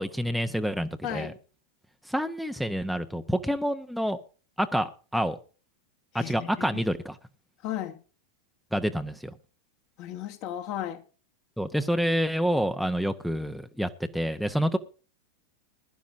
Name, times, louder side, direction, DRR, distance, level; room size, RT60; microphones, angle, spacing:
voice 1, 0.0-1.3 2.1-4.2 4.6-5.4 6.1-7.2 8.7-9.3 11.6-14.8, equal, ahead, 10 dB, 0.9 m, -28 dB
voice 2, 1.0-1.3 6.1-6.8 7.6-8.0 10.0-11.0, left 11 dB, 45° left, 5 dB, 2.2 m, -35 dB
21.0 x 11.5 x 2.6 m, 0.36 s
figure-of-eight pair, 90°, 0 cm